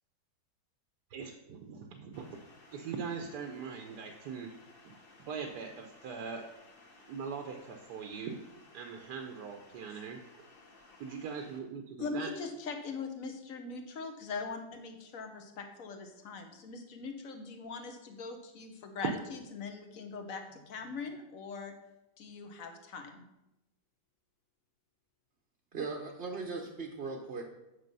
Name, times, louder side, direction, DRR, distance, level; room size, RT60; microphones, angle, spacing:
voice 1, 1.1-2.4 2.7-4.5 4.8-4.9 5.2-6.4 7.1-8.4 8.7-10.4 11.0-12.3, right 6 dB, 75° right, 4 dB, 1.3 m, -41 dB
sound 1, 2.1-11.6, left 2 dB, 35° left, 1.4 m, -58 dB
voice 2, 12.0-19.2 19.5-21.7 22.2-23.2, left 4 dB, 55° left, 6 dB, 1.4 m, -41 dB
voice 3, 25.7-27.4, right 4 dB, 45° right, 1 dB, 0.9 m, -38 dB
8.5 x 6.1 x 5.4 m, 0.94 s
omnidirectional pair, 1.8 m